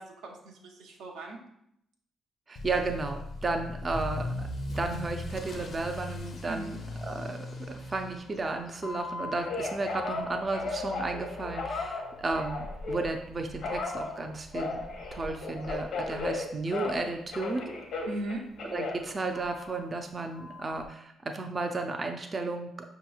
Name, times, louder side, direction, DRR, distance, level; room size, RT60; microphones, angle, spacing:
voice 1, 0.0-1.4 6.5-6.7 18.1-18.4, right 1 dB, 90° right, 0 dB, 0.7 m, -38 dB
voice 2, 2.5-4.5 4.8-7.5 7.9-14.8 15.1-17.7 18.6-22.7, right 3 dB, 35° right, 4 dB, 0.4 m, -33 dB
Motor vehicle (road) / Accelerating revving vroom, 2.6-17.4 17.7-18.1 18.6-18.7 19.0-19.1 19.4-19.5 20.8-20.9, left 2 dB, 55° left, 0.5 m, -41 dB
Telephone, 8.8-13.1 13.6-17.1 17.3-19.8 20.3-20.8, left 3 dB, 70° left, 0.8 m, -36 dB
5.1 x 2.9 x 2.3 m, 0.75 s
cardioid pair, 90°, 0 cm